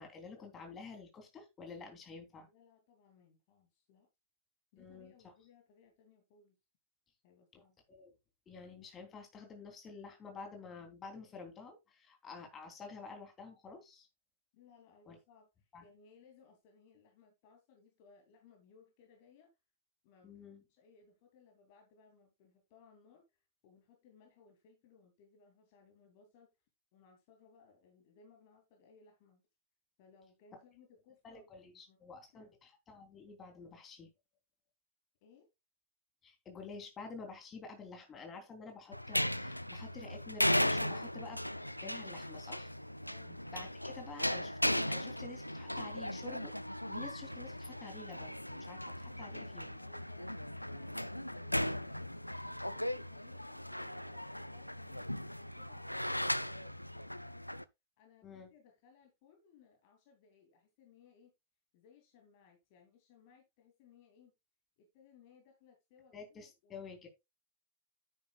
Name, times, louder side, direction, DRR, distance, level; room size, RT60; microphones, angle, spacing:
voice 1, 0.0-2.5 4.8-5.1 7.5-7.6 7.9-8.1 8.5-14.1 15.0-15.2 15.7-15.8 20.2-20.6 31.2-34.1 36.2-41.4 41.8-42.7 43.3-46.5 46.9-49.8 58.2-58.5 66.1-67.1, left 4 dB, 25° left, 3.3 m, -50 dB
voice 2, 2.5-4.1 4.7-6.6 7.2-7.8 14.5-19.5 20.0-20.4 20.7-26.5 26.9-29.4 30.0-32.5 35.2-35.5 43.0-43.4 49.3-52.1 52.4-56.9 58.0-61.3 61.7-64.3 64.8-66.8, left 5 dB, 50° left, 2.6 m, -64 dB
sound 1, 38.9-57.6, left 1 dB, 90° left, 0.4 m, -37 dB
10.5 x 9.5 x 2.4 m
figure-of-eight pair, 90°, 0 cm